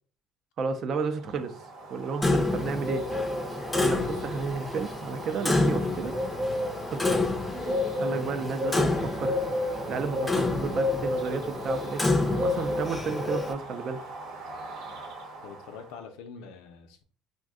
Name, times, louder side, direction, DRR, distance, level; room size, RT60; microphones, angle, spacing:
voice 1, 0.6-1.5 1.9-3.1 3.8-6.1 6.9-7.3 8.0-9.4 9.9-14.0, right 5 dB, 50° right, 8 dB, 0.5 m, -32 dB
Bird, 1.2-15.9, left 1 dB, 75° right, 0.8 m, -34 dB
Clock, 2.2-13.5, left 2 dB, 15° left, 0.5 m, -29 dB
Bowed string instrument, 8.2-12.4, right 3 dB, 25° right, 0.8 m, -44 dB
voice 2, 15.4-17.0, left 6 dB, 80° left, 6 dB, 0.5 m, -45 dB
2.5 x 2.2 x 3.6 m, 0.44 s
supercardioid pair, 95°, 0 cm